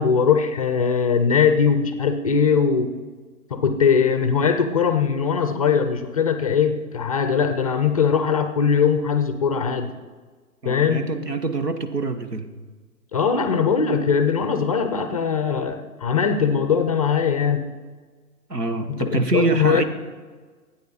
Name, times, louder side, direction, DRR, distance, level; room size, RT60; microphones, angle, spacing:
voice 1, 0.0-2.9 3.5-9.9 10.6-11.1 13.1-17.7 18.9-19.8, left 6 dB, 25° left, 9 dB, 0.5 m, -20 dB
voice 2, 10.6-12.5 18.5-19.8, right 3 dB, 90° right, 9 dB, 1.2 m, -25 dB
12.5 x 9.0 x 5.4 m, 1.4 s
figure-of-eight pair, 125°, 46 cm